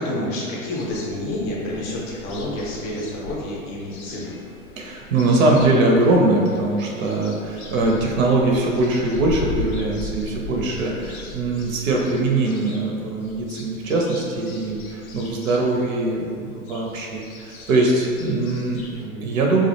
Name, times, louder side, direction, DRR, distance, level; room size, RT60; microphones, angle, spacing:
voice 1, 0.0-4.3 10.5-10.9 18.9-19.3, left 1 dB, 30° left, -4 dB, 0.5 m, -29 dB
sound 1, 0.7-19.1, left 4 dB, 80° left, 0.5 m, -39 dB
voice 2, 4.8-18.8 19.2-19.7, right 2 dB, 65° right, -1 dB, 0.5 m, -21 dB
2.3 x 2.0 x 2.8 m, 2.3 s
hypercardioid pair, 110°, 43 cm